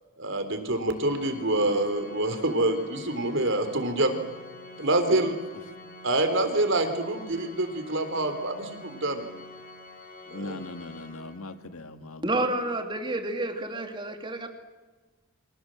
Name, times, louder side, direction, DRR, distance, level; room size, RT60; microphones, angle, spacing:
voice 1, 0.2-4.2 4.8-5.3 6.0-9.2 10.3-10.6, right 2 dB, 55° right, 8 dB, 3.8 m, -26 dB
Organ, 0.9-11.7, left 2 dB, 40° left, 5.3 m, -47 dB
voice 2, 10.3-12.4, left 2 dB, 80° left, 9 dB, 1.9 m, -40 dB
voice 3, 12.2-14.5, right 2 dB, 20° right, 5 dB, 3.0 m, -29 dB
29.0 x 25.0 x 7.9 m, 1.2 s
head